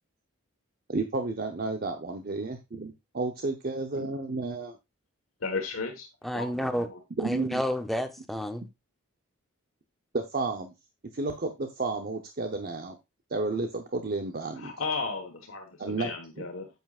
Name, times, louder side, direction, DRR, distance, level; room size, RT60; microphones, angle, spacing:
voice 1, 0.9-4.7 7.2-7.6 10.1-10.7 11.1-13.0 13.3-14.7 15.8-16.2, right 3 dB, 40° right, 5 dB, 0.8 m, -31 dB
voice 2, 5.4-6.1 6.3-7.0 14.6-16.7, left 4 dB, 65° left, 4 dB, 1.4 m, -34 dB
voice 3, 6.2-6.9 7.2-8.7, equal, ahead, 6 dB, 0.7 m, -30 dB
9.1 x 8.1 x 2.4 m, 0.22 s
head